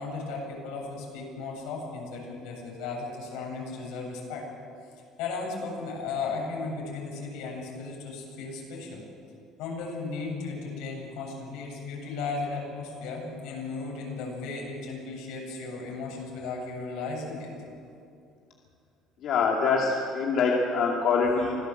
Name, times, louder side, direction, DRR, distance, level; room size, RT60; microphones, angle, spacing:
voice 1, 0.0-4.4 5.2-9.0 9.6-17.5, left 4 dB, 80° left, -1 dB, 7.8 m, -35 dB
voice 2, 19.2-21.6, left 5 dB, 45° left, -2 dB, 2.3 m, -24 dB
25.0 x 16.5 x 7.8 m, 2.4 s
cardioid pair, 170°, 0 cm